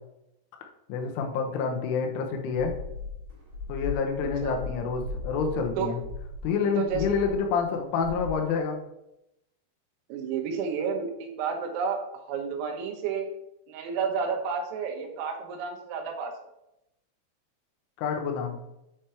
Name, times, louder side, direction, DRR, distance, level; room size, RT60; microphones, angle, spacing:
voice 1, 0.9-2.7 3.7-6.0 6.4-8.8 18.0-18.6, left 5 dB, 75° left, 3 dB, 3.3 m, -28 dB
sound 1, 2.5-7.7 8.0-8.3, left 3 dB, 50° right, 4.7 m, -38 dB
voice 2, 4.2-4.6 5.8-5.9 6.8-7.2 10.1-13.3 13.7-16.3, right 6 dB, 85° right, 2 dB, 3.9 m, -31 dB
9.0 x 5.2 x 4.4 m, 0.85 s
omnidirectional pair, 5.9 m